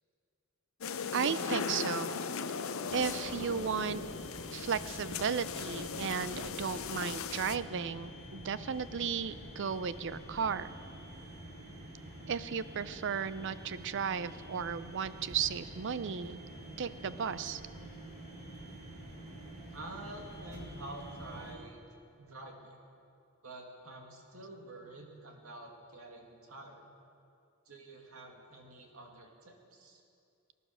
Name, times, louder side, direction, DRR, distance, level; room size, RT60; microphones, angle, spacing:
sound 1, 0.8-7.6, left 5 dB, 70° left, 0.7 m, -38 dB
voice 1, 1.1-2.2 2.9-4.0 4.5-10.7 12.3-16.4 16.8-17.6, right 6 dB, 60° right, 15 dB, 0.5 m, -35 dB
sound 2, 2.9-21.5, right 1 dB, 35° right, 3.6 m, -48 dB
voice 2, 19.7-22.8 23.4-26.9 27.7-30.0, right 2 dB, 75° right, 1 dB, 2.3 m, -48 dB
19.5 x 11.0 x 6.5 m, 2.5 s
head